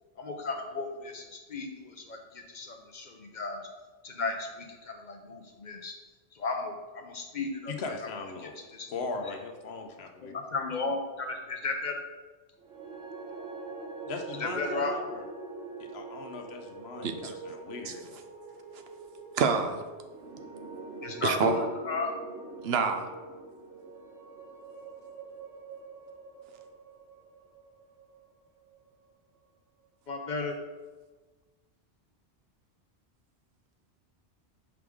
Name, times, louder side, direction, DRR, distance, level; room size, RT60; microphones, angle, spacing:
voice 1, 0.2-3.6 4.0-5.9 6.3-7.7 8.8-8.9 10.2-12.0 14.4-14.9 21.0-22.1 30.1-30.5, left 3 dB, 50° left, 3 dB, 0.6 m, -34 dB
voice 2, 7.7-8.5 8.9-10.3 14.0-15.3 15.8-18.0, left 3 dB, 70° left, 5 dB, 0.9 m, -39 dB
sound 1, 12.6-28.9, right 3 dB, 90° right, 1.4 m, -44 dB
voice 3, 19.3-19.9 21.2-21.6 22.6-23.1, right 5 dB, 70° right, 7 dB, 0.8 m, -27 dB
6.1 x 4.7 x 3.6 m, 1.3 s
omnidirectional pair, 1.1 m